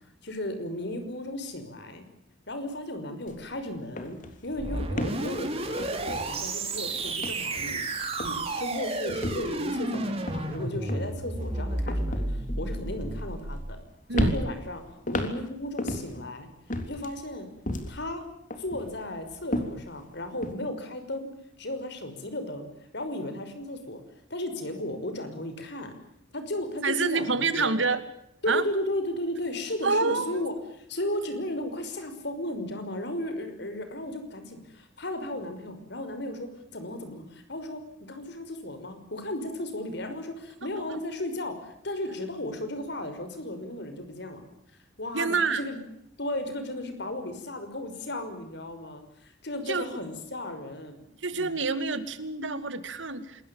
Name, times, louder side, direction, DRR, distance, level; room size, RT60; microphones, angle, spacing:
voice 1, 0.2-2.0 2.5-13.8 14.1-16.5 16.8-17.5 17.9-18.2 18.6-21.3 21.6-22.7 22.9-24.0 24.3-25.9 26.3-27.7 28.4-44.4 45.0-45.8 46.2-51.0 51.3-51.5, left 1 dB, 65° left, 9 dB, 5.8 m, -35 dB
sound 1, 3.3-3.5 3.8-6.8 7.1-7.9 8.2-8.6 9.1-13.8 14.1-16.3 16.7-18.1 18.5-20.5, left 1 dB, 45° left, 3.6 m, -34 dB
sound 2, 4.6-13.7, right 2 dB, 35° right, 4.9 m, -32 dB
voice 2, 26.8-28.0 28.5-28.6 29.8-30.4 40.8-41.0 45.1-45.6 49.7-50.0 51.2-53.4, right 4 dB, 80° right, 12 dB, 2.4 m, -27 dB
27.5 x 21.5 x 7.2 m, 0.75 s
head